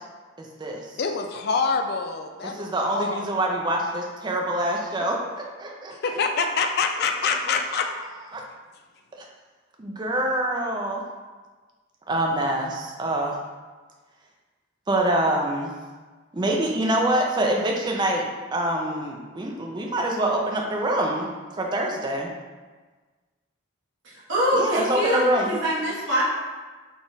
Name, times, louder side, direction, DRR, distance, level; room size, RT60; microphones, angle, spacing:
voice 1, 0.4-0.9 2.4-6.0 7.5-7.6 8.3-8.4 9.2-9.3 9.8-11.0 12.1-13.4 14.9-15.7 16.3-21.3 21.6-22.3 24.5-25.5, right 1 dB, 20° right, 0 dB, 0.4 m, -25 dB
voice 2, 1.0-2.7 2.9-3.2 5.9-7.9, left 4 dB, 50° left, 5 dB, 0.3 m, -25 dB
voice 3, 24.3-26.3, equal, 60° right, -9 dB, 1.2 m, -24 dB
3.8 x 2.4 x 3.9 m, 1.4 s
head